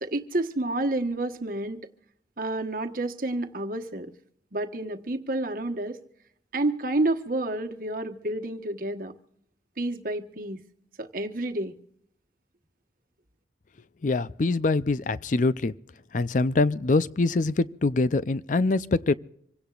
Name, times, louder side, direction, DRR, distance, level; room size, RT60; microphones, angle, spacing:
voice 1, 0.0-1.8 2.4-4.1 4.5-6.0 6.5-9.1 9.8-10.6 11.0-11.7, right 2 dB, 50° right, 1.2 m, -29 dB
voice 2, 14.0-15.7 16.1-19.1, left 3 dB, 45° left, 0.5 m, -24 dB
26.5 x 17.0 x 2.4 m
head